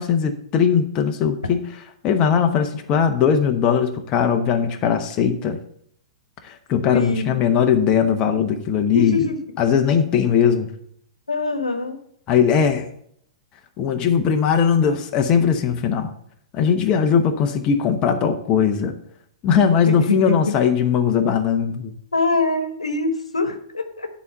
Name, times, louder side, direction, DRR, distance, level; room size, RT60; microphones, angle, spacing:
voice 1, 0.0-1.8 2.0-5.6 6.4-9.2 9.6-10.7 12.3-12.9 13.8-16.1 16.5-19.0 19.4-21.9, left 7 dB, 30° left, 5 dB, 1.0 m, -19 dB
voice 2, 6.9-7.2 8.9-9.4 11.3-12.0 19.8-20.4 22.1-24.1, left 4 dB, 90° left, 7 dB, 1.2 m, -23 dB
9.6 x 4.2 x 6.6 m, 0.68 s
hypercardioid pair, 110°, 3 cm